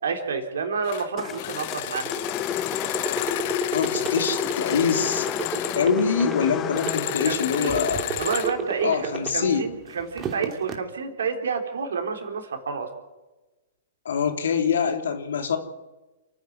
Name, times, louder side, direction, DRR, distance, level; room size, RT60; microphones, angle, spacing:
voice 1, 0.0-2.3 7.2-7.9 8.2-12.9, right 5 dB, 75° right, 4 dB, 3.8 m, -29 dB
sound 1, 0.8-1.1 1.4-5.9 6.7-8.5, left 14 dB, 50° left, 1.4 m, -32 dB
sound 2, 1.2-9.4, left 11 dB, 30° left, 0.6 m, -32 dB
sound 3, 1.4-9.6 10.0-10.7, right 8 dB, 30° right, 2.8 m, -30 dB
voice 2, 3.7-5.3 5.8-8.1 8.8-9.7 14.0-15.6, left 6 dB, 70° left, 6 dB, 2.9 m, -24 dB
29.0 x 10.0 x 9.6 m, 1.1 s
hypercardioid pair, 110°, 0 cm